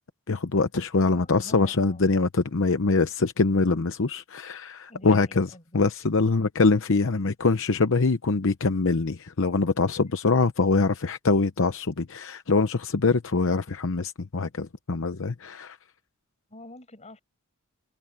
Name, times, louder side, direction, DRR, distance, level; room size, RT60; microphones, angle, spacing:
voice 1, 0.3-5.5 5.7-15.8, left 3 dB, 65° left, 0.8 m, -24 dB
voice 2, 1.0-2.1 4.9-5.8 16.5-17.2, left 2 dB, 30° left, 7.1 m, -46 dB
head